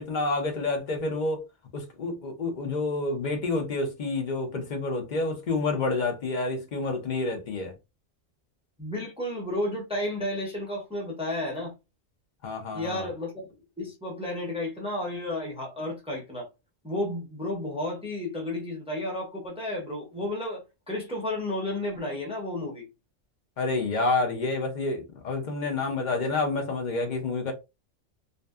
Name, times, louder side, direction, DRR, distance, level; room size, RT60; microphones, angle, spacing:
voice 1, 0.0-1.4 1.7-7.7 12.4-13.1 23.6-27.5, left 3 dB, 50° left, 0.6 m, -28 dB
voice 2, 8.8-11.7 12.7-13.4 13.8-16.5 16.8-22.9, left 1 dB, 10° right, 0.3 m, -32 dB
2.6 x 2.1 x 2.2 m
omnidirectional pair, 1.4 m